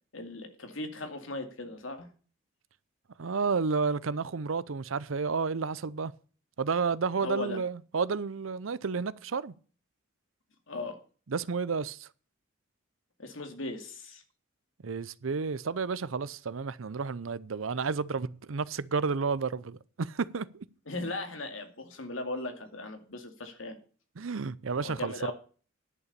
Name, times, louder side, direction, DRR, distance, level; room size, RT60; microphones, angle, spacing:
voice 1, 0.1-2.1 7.2-7.6 10.7-11.0 13.2-14.2 20.9-23.8 24.8-25.3, left 2 dB, 80° left, 2.3 m, -38 dB
voice 2, 3.2-6.1 6.6-9.5 11.3-12.1 14.8-20.7 24.2-25.3, right 5 dB, 90° right, 0.6 m, -31 dB
11.0 x 7.0 x 6.8 m
head